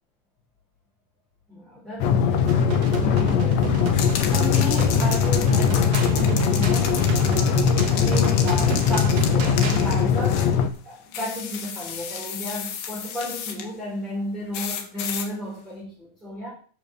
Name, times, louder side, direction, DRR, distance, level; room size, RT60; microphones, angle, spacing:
voice 1, 1.5-10.5 10.8-16.5, left 1 dB, ahead, -7 dB, 3.9 m, -33 dB
sound 1, 2.0-10.7, left 7 dB, 70° left, 1.7 m, -21 dB
sound 2, 2.5-9.9, right 5 dB, 50° right, 1.9 m, -30 dB
sound 3, 3.9-10.6 11.1-13.7 14.5-15.3, left 8 dB, 90° left, 3.1 m, -33 dB
8.4 x 6.7 x 7.8 m, 0.43 s
omnidirectional pair, 4.0 m